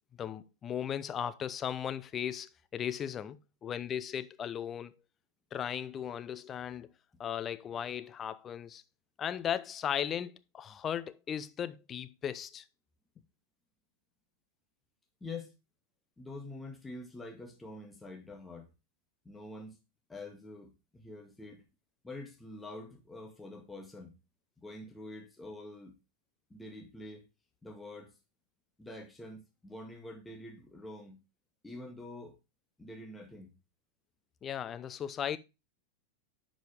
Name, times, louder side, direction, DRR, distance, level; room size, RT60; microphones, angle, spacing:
voice 1, 0.2-4.9 5.5-6.9 7.2-8.8 9.2-12.6 34.4-35.4, left 9 dB, 25° left, 0.7 m, -37 dB
voice 2, 15.2-15.5 16.2-18.7 19.3-19.8 20.1-21.7 22.0-24.2 24.6-25.9 26.5-27.3 27.6-28.2 28.8-31.2 31.6-32.4 32.8-33.5, left 2 dB, 10° left, 1.8 m, -46 dB
10.5 x 5.1 x 3.6 m
figure-of-eight pair, 90°, 0 cm